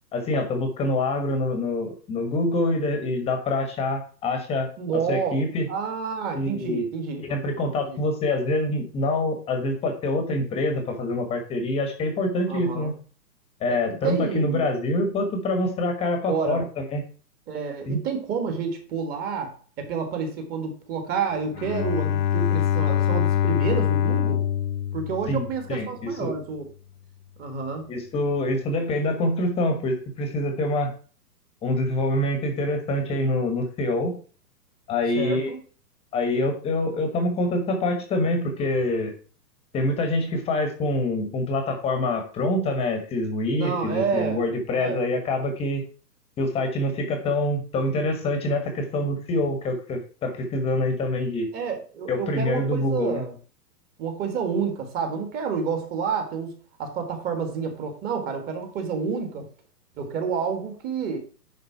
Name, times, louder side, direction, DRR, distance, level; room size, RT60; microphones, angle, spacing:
voice 1, 0.1-5.7 6.3-6.9 7.2-12.9 13.6-17.0 17.9-18.0 25.3-26.4 27.9-30.9 31.6-34.2 34.9-35.5 36.1-39.1 39.7-45.8 46.4-51.5 52.1-53.2, left 1 dB, 10° left, 5 dB, 1.2 m, -25 dB
voice 2, 4.8-5.3 5.7-7.2 7.7-8.0 12.5-12.9 13.7-13.8 14.0-14.7 16.3-16.6 17.5-24.4 24.9-26.6 27.4-27.9 35.1-35.6 43.5-44.4 44.7-45.1 51.5-53.3 54.0-56.5 56.8-59.5 60.0-61.2, right 6 dB, 20° right, 5 dB, 1.6 m, -29 dB
Bowed string instrument, 21.5-25.9, left 10 dB, 75° left, 0.6 m, -24 dB
10.0 x 3.9 x 5.7 m, 0.39 s
hypercardioid pair, 150°, 49 cm